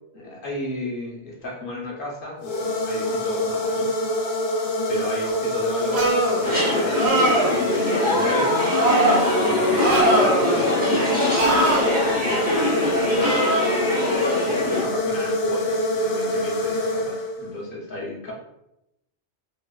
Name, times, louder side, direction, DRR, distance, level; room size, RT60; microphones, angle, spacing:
voice 1, 0.1-3.9 4.9-7.3 7.6-13.5 14.4-18.3, left 1 dB, 60° left, -2 dB, 0.6 m, -32 dB
sound 1, 2.4-17.6, left 1 dB, 80° left, 0.9 m, -25 dB
sound 2, 5.9-6.4 6.9-7.6 8.7-9.2 9.8-10.6 11.3-11.8 13.2-13.7, right 2 dB, 70° right, 0.9 m, -21 dB
sound 3, 6.4-14.8, left 2 dB, 15° right, 0.4 m, -24 dB
2.6 x 2.1 x 2.2 m, 0.86 s
omnidirectional pair, 1.2 m